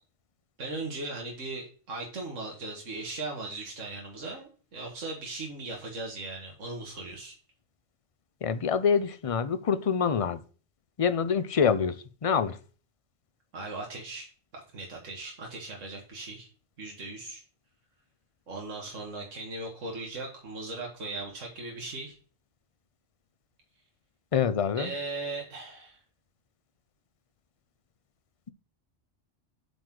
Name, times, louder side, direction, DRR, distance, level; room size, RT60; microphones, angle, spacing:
voice 1, 0.6-7.3 13.5-16.5 16.8-17.4 18.5-22.1 24.8-26.0, right 2 dB, 80° right, 2.0 m, -38 dB
voice 2, 8.4-10.4 11.0-12.6 24.3-24.9, left 6 dB, 45° left, 0.4 m, -26 dB
7.7 x 5.2 x 6.0 m
omnidirectional pair, 1.3 m